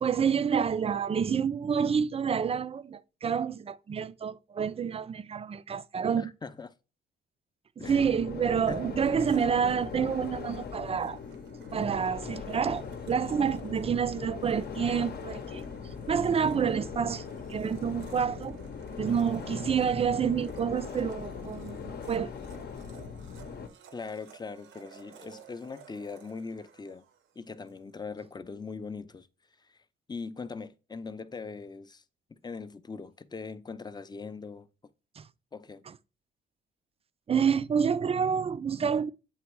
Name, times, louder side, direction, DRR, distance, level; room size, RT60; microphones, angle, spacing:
voice 1, 0.0-6.3 7.8-11.2 11.7-17.2 17.5-18.6 19.0-22.3 35.2-35.3 37.3-39.1, right 7 dB, 30° right, 0.4 m, -28 dB
voice 2, 6.2-6.7 7.8-8.1 8.7-8.9 23.9-27.0 27.4-29.3 29.6-29.8 30.1-32.0 32.3-34.7 35.5-35.8, left 4 dB, 20° left, 0.6 m, -41 dB
sound 1, 7.8-23.7, left 6 dB, 55° left, 0.8 m, -40 dB
Domestic sounds home sounds, 9.0-27.8, right 8 dB, 85° right, 1.0 m, -54 dB
8.2 x 3.0 x 4.6 m
cardioid pair, 90°, 20 cm